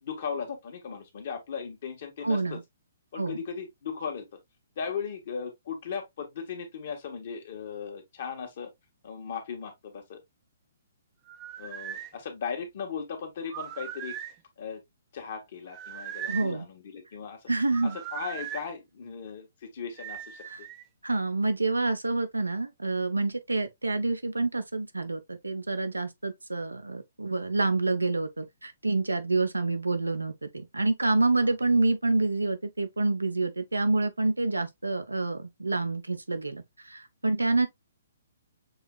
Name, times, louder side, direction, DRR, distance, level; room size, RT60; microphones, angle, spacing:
voice 1, 0.0-2.6 3.1-4.3 4.8-8.7 9.0-10.2 11.6-14.2 14.6-14.8 15.1-17.4 17.8-20.4 31.4-31.5, left 6 dB, 50° left, 1.5 m, -37 dB
voice 2, 2.2-2.6 3.1-3.4 16.3-16.6 17.5-18.0 20.5-20.6 21.0-37.7, right 3 dB, 85° right, 0.7 m, -27 dB
sound 1, 11.3-12.1 13.5-14.4 15.7-16.6 17.7-18.7 20.0-20.8, right 10 dB, 30° right, 0.6 m, -39 dB
6.5 x 3.0 x 2.2 m
figure-of-eight pair, 125°, 0 cm